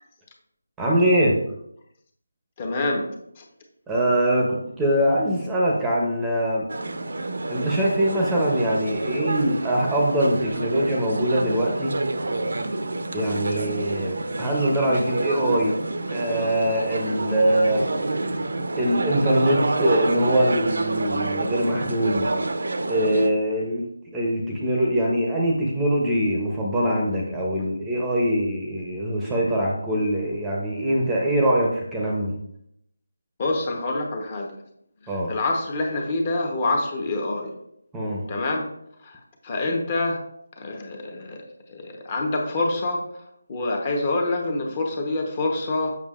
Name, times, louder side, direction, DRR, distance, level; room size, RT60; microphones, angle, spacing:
voice 1, 0.8-1.4 3.9-6.7 7.5-12.0 13.1-15.8 16.1-17.9 18.7-22.3 22.9-23.9 24.1-32.3 35.1-35.3 37.9-38.2, right 1 dB, 5° right, -3 dB, 0.7 m, -23 dB
voice 2, 2.6-3.1 3.4-3.5 33.4-34.5 35.3-37.5 38.3-38.7 39.0-39.1 39.4-40.2 40.6-43.0 43.5-46.0, left 2 dB, 30° left, 2 dB, 0.9 m, -26 dB
sound 1, 6.7-23.3, right 2 dB, 65° right, 0.6 m, -28 dB
7.1 x 6.0 x 2.4 m, 0.76 s
figure-of-eight pair, 165°, 0 cm